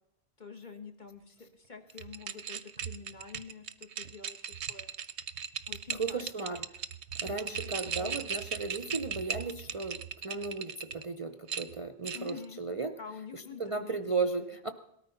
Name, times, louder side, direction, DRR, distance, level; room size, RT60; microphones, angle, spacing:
voice 1, 0.4-4.9 5.7-6.5 7.2-8.3 12.1-12.6 13.0-14.0 14.4-14.5, left 5 dB, 45° left, 5 dB, 1.8 m, -47 dB
sound 1, 1.9-11.0 11.5-12.5, right 7 dB, 90° right, 1.1 m, -38 dB
voice 2, 5.9-6.6 7.2-13.0 13.3-14.7, right 4 dB, 35° right, 10 dB, 0.7 m, -35 dB
18.5 x 13.5 x 5.7 m, 0.79 s
omnidirectional pair, 1.1 m